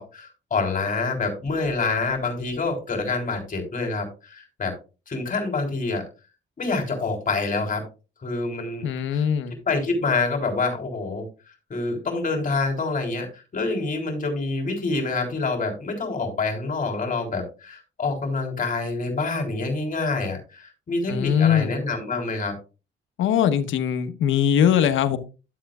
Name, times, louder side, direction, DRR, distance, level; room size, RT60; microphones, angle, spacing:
voice 1, 0.0-4.7 5.1-6.0 6.6-7.8 8.2-8.9 9.1-9.2 9.7-11.3 11.7-22.5, left 3 dB, 40° left, 3.7 m, -27 dB
voice 2, 8.8-9.6 21.1-21.8 23.2-25.2, left 9 dB, 80° left, 1.1 m, -21 dB
11.5 x 7.7 x 2.4 m
cardioid pair, 90°, 20 cm